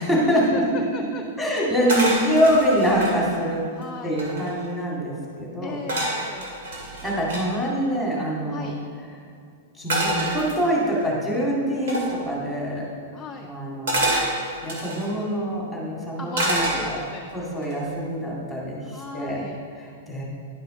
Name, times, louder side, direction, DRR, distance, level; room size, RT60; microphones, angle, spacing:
voice 1, 0.0-0.6 1.4-3.6 4.0-5.8 6.8-8.7 9.8-12.8 13.4-14.1 14.4-16.6 16.9-17.0 17.3-19.5 19.8-20.2, equal, 5° right, -5 dB, 2.2 m, -24 dB
voice 2, 0.5-1.5 1.8-2.0 3.7-4.2 5.6-6.5 8.5-8.8 13.1-13.5 16.2-17.3 18.8-19.6, left 3 dB, 15° left, 2 dB, 0.4 m, -37 dB
sound 1, 1.9-3.2 3.8-3.9 4.1-4.7 5.9-7.4 9.9-11.0 11.9-12.1 13.9-15.1 16.3-17.2 17.6-18.0, right 1 dB, 75° right, 2.1 m, -27 dB
10.5 x 5.5 x 3.8 m, 2.3 s
hypercardioid pair, 150°, 0 cm